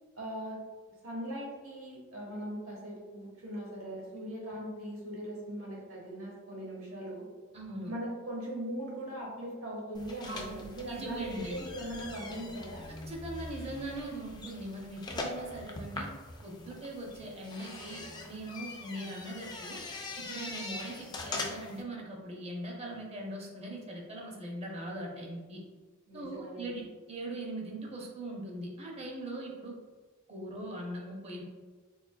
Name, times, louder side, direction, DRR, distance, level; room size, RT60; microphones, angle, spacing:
voice 1, 0.2-0.6 1.0-7.2 7.9-12.8 26.1-26.8, right 1 dB, 85° right, -3 dB, 1.2 m, -40 dB
voice 2, 7.5-7.9 10.3-11.6 12.9-16.1 16.4-19.8 20.2-25.6 26.1-26.8 27.1-29.7 30.3-31.4, right 1 dB, 30° right, 0 dB, 0.6 m, -41 dB
sound 1, 9.9-21.8, left 2 dB, 20° left, 0.3 m, -42 dB
3.8 x 3.2 x 2.2 m, 1.3 s
head